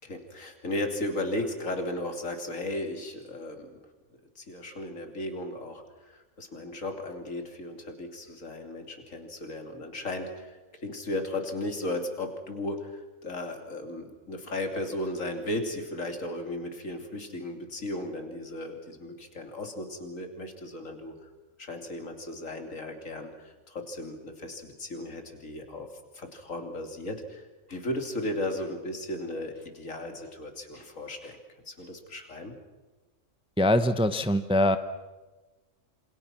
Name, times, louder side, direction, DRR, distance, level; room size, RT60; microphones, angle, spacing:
voice 1, 0.0-3.8 4.4-21.3 21.6-25.9 26.1-31.4 31.7-32.5, left 1 dB, 75° left, 4 dB, 3.2 m, -35 dB
voice 2, 33.6-34.8, left 1 dB, 5° right, 10 dB, 0.7 m, -23 dB
27.5 x 26.5 x 6.1 m, 1.2 s
omnidirectional pair, 1.4 m